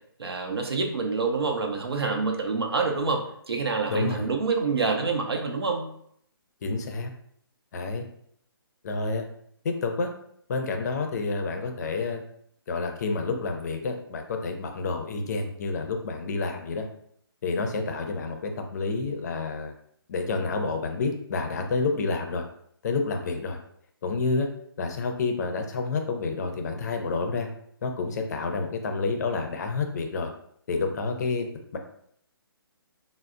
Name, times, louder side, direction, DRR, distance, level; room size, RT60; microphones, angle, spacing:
voice 1, 0.2-5.9, right 4 dB, 80° right, 2 dB, 0.7 m, -27 dB
voice 2, 3.9-4.3 6.6-7.1 7.7-8.0 8.8-9.3 9.6-10.1 10.5-12.2 12.7-16.9 17.4-19.7 20.1-22.4 22.8-23.6 24.0-24.5 24.8-27.5 27.8-30.3 30.7-31.5 31.7-31.8, left 4 dB, 45° left, 4 dB, 0.5 m, -29 dB
3.9 x 2.0 x 2.3 m, 0.68 s
hypercardioid pair, 150°, 13 cm